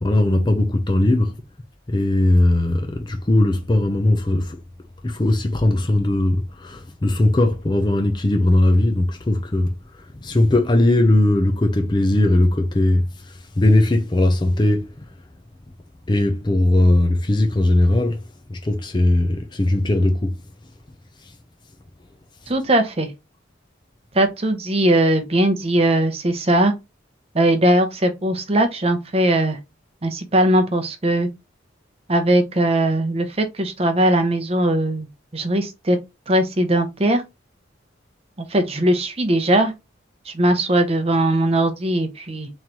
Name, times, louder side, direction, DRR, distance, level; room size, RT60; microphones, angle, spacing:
voice 1, 0.0-1.3 1.9-4.6 5.0-9.7 10.2-13.1 13.6-14.9 16.1-18.2 18.5-20.4, left 1 dB, 25° left, 0.5 m, -18 dB
voice 2, 22.5-23.1 24.1-26.7 27.3-29.6 30.0-31.3 32.1-35.1 35.3-36.0 36.3-37.2 38.5-39.7 40.3-42.5, right 1 dB, 30° right, 0.7 m, -19 dB
3.8 x 3.1 x 2.9 m
head